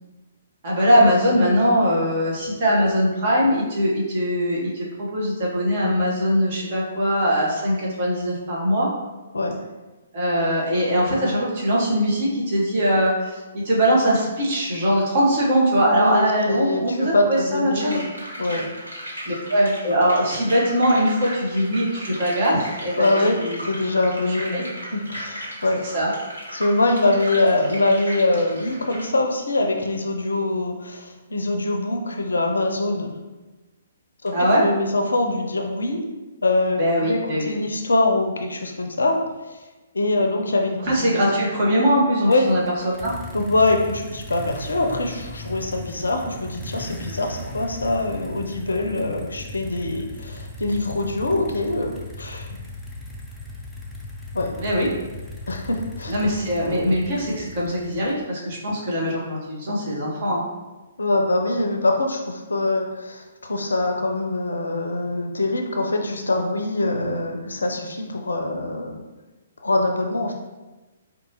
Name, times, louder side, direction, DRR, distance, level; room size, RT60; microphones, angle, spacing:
voice 1, 0.6-8.9 10.1-18.0 19.2-23.6 24.5-24.6 25.8-26.1 34.3-34.6 36.8-37.5 40.8-43.1 54.6-54.9 56.1-60.4, equal, 40° right, -5 dB, 1.2 m, -21 dB
voice 2, 15.8-18.0 18.4-18.7 23.0-23.4 23.6-25.8 26.5-33.1 34.2-34.3 34.6-36.0 36.4-39.2 39.9-41.5 42.3-42.5 43.3-52.5 54.3-54.5 55.5-56.1 61.0-69.0 69.6-70.3, left 2 dB, 70° left, 3 dB, 0.5 m, -23 dB
sound 1, 17.8-29.0, equal, 75° right, 1.2 m, -36 dB
sound 2, 42.3-58.3, left 1 dB, ahead, 0.5 m, -37 dB
4.6 x 2.4 x 2.9 m, 1.2 s
figure-of-eight pair, 125°, 0 cm